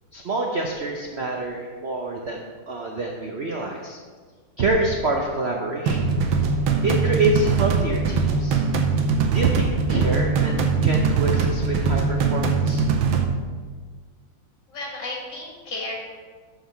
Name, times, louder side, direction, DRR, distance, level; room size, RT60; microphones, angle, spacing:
voice 1, 0.1-2.4 2.7-4.0 4.6-6.1 6.8-8.6 9.3-12.8, right 2 dB, 65° right, 0 dB, 0.6 m, -26 dB
sound 1, 5.9-13.2, right 5 dB, 90° right, 1.6 m, -22 dB
voice 2, 14.7-16.0, left 2 dB, 60° left, -3 dB, 2.7 m, -33 dB
12.0 x 4.7 x 4.5 m, 1.5 s
omnidirectional pair, 2.2 m